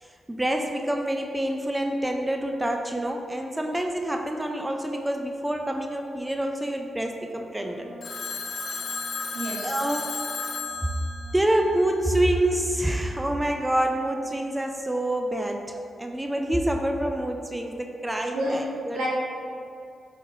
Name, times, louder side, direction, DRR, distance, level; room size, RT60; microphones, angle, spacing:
voice 1, 0.0-7.9 9.6-10.2 11.3-19.1, right 1 dB, 15° right, 3 dB, 0.4 m, -27 dB
Wind instrument woodwind instrument, 7.5-14.3, left 1 dB, 15° left, 0.8 m, -51 dB
Telephone, 8.0-12.2, left 4 dB, 65° left, 0.4 m, -34 dB
voice 2, 9.3-9.7 18.3-18.6 18.9-19.1, equal, 85° right, -6 dB, 1.1 m, -29 dB
5.1 x 3.8 x 2.6 m, 2.5 s
supercardioid pair, 55°, 0 cm